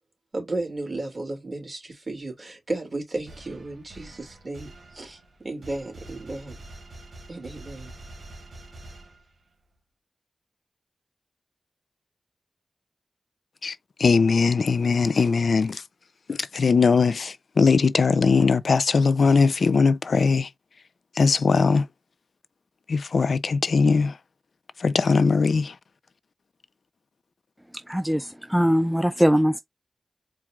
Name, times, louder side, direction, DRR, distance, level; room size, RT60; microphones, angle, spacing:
voice 1, 0.3-6.6 7.3-7.9, right 2 dB, 45° right, 2.3 m, -34 dB
sound 1, 3.3-9.6, right 2 dB, 85° right, 1.3 m, -45 dB
voice 2, 13.6-15.8 16.3-20.5 21.2-21.9 22.9-24.2 24.8-25.8, left 4 dB, 75° left, 0.3 m, -20 dB
voice 3, 27.9-29.6, equal, 5° right, 0.4 m, -21 dB
4.5 x 2.3 x 3.6 m
cardioid pair, 60°, 0 cm